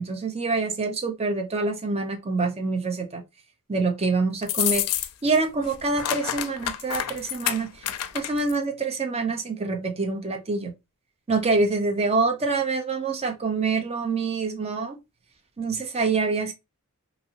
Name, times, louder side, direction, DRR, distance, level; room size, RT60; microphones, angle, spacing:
voice 1, 0.0-3.2 3.7-4.8 5.2-7.7 8.1-10.7 11.3-15.0 15.6-16.5, right 3 dB, 30° right, 0.6 m, -26 dB
sound 1, 4.4-5.4 5.6-8.6, left 11 dB, 80° left, 0.4 m, -28 dB
2.9 x 2.6 x 2.8 m
head